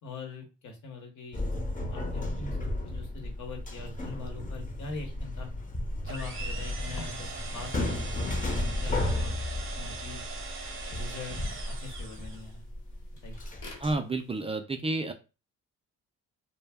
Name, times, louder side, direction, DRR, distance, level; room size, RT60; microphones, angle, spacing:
voice 1, 0.0-1.5 1.9-2.6 2.8-5.5 6.0-10.2 10.9-11.4 11.8-12.6 13.2-13.4, left 3 dB, 75° left, 3 dB, 0.9 m, -43 dB
sound 1, 1.3-13.9, left 1 dB, 25° left, 0.7 m, -34 dB
sound 2, 6.1-12.6, right 4 dB, 45° right, 0.7 m, -41 dB
sound 3, 6.9-14.4, left 3 dB, 45° left, 1.1 m, -53 dB
voice 2, 13.8-15.1, right 2 dB, 20° right, 5 dB, 0.3 m, -30 dB
2.2 x 2.0 x 3.4 m, 0.31 s
cardioid pair, 90°, 30 cm